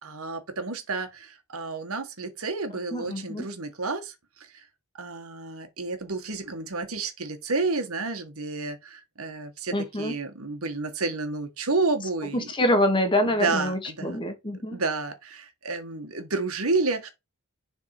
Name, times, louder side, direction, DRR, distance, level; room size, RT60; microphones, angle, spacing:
voice 1, 0.0-4.1 5.0-12.5 13.4-14.2 14.7-17.1, right 3 dB, 70° right, 1.5 m, -30 dB
voice 2, 2.9-3.5 9.7-10.2 12.3-14.8, left 1 dB, 20° left, 1.3 m, -25 dB
7.0 x 3.7 x 4.4 m
head